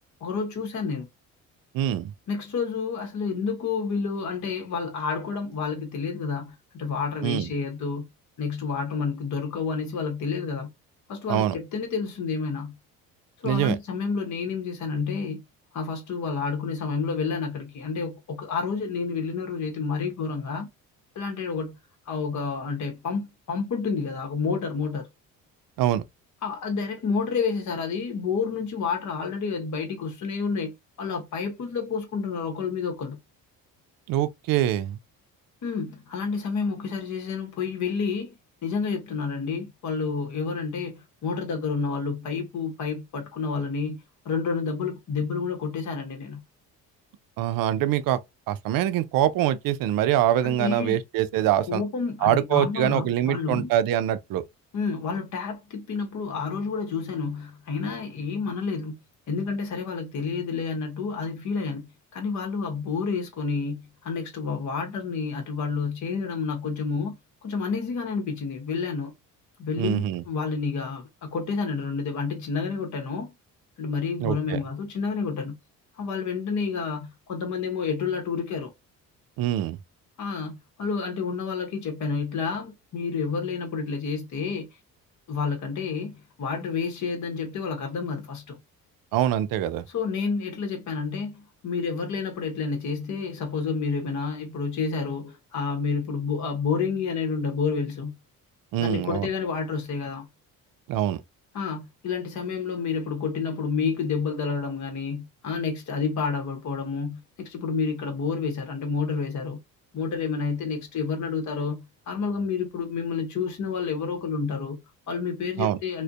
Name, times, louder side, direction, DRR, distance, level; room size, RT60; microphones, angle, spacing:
voice 1, 0.2-1.1 2.3-8.1 8.4-10.7 11.1-12.7 13.4-15.4 15.7-20.7 21.1-21.8 22.1-25.1 26.4-30.7 31.0-33.2 35.6-38.3 38.6-46.4 50.4-51.0 51.6-53.7 54.7-59.0 59.3-67.2 67.4-69.1 69.6-73.3 73.8-75.6 76.0-78.7 80.2-84.7 85.3-88.6 89.9-98.1 98.8-100.3 101.5-109.6 109.9-116.0, left 5 dB, 50° left, 1.0 m, -29 dB
voice 2, 1.7-2.1 7.2-7.5 11.3-11.5 13.4-13.8 25.8-26.0 34.1-35.0 47.4-48.2 48.5-51.8 52.2-54.4 69.8-70.2 74.2-74.6 79.4-79.8 89.1-89.8 98.7-99.3 100.9-101.2 115.6-115.8, right 12 dB, 65° right, 0.5 m, -24 dB
2.5 x 2.2 x 2.3 m
supercardioid pair, 80°, 37 cm